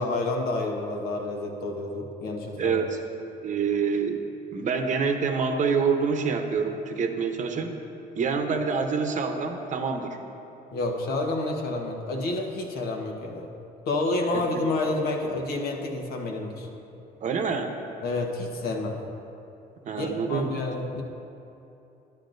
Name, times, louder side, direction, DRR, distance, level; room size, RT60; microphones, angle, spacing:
voice 1, 0.0-2.8 10.7-13.5 13.8-16.7 18.0-19.0 20.0-21.0, left 2 dB, 65° left, 1 dB, 1.3 m, -29 dB
voice 2, 2.6-3.0 3.4-4.2 4.5-7.7 8.2-10.2 14.3-14.6 17.2-17.8 19.8-20.5, right 5 dB, 45° right, 5 dB, 0.9 m, -26 dB
11.5 x 10.5 x 2.6 m, 2.8 s
cardioid pair, 110°, 17 cm